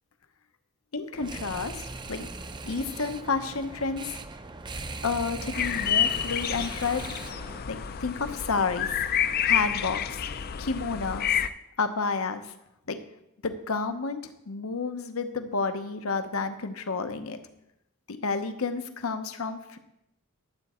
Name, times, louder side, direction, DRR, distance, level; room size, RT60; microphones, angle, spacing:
voice 1, 0.9-2.3 2.6-4.2 5.0-7.1 7.7-9.0 9.4-10.2 10.6-11.4 11.8-12.5 12.9-13.0 13.4-14.2 14.5-17.4 18.2-19.8, left 4 dB, 80° left, 9 dB, 0.9 m, -30 dB
sound 1, 1.1-7.6, right 3 dB, 20° right, 0.5 m, -39 dB
sound 2, 5.5-11.5, left 9 dB, 45° left, 0.4 m, -29 dB
12.0 x 8.2 x 4.3 m, 0.84 s
head